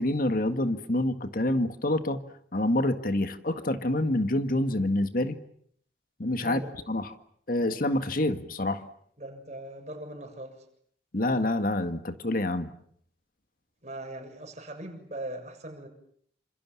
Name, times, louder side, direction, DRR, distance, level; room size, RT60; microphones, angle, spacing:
voice 1, 0.0-2.2 2.5-5.3 6.2-6.6 6.9-7.1 7.5-8.8 11.1-12.7, left 1 dB, 55° left, 9 dB, 1.8 m, -27 dB
voice 2, 6.4-6.7 9.2-10.6 13.8-15.9, right 1 dB, 40° right, 5 dB, 7.0 m, -40 dB
29.0 x 27.5 x 7.4 m, 0.65 s
head